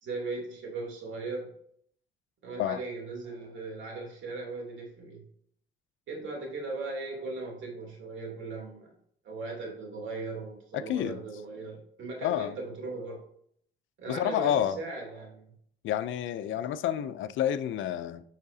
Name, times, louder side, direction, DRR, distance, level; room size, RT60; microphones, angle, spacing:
voice 1, 0.0-1.5 2.4-5.2 6.1-8.9 9.2-13.2 14.0-15.5 16.5-16.6, right 3 dB, 75° right, 3.0 m, -38 dB
voice 2, 10.7-11.2 12.2-12.6 14.1-14.8 15.8-18.2, left 10 dB, 75° left, 0.5 m, -29 dB
8.5 x 5.7 x 2.7 m
cardioid pair, 90°, 20 cm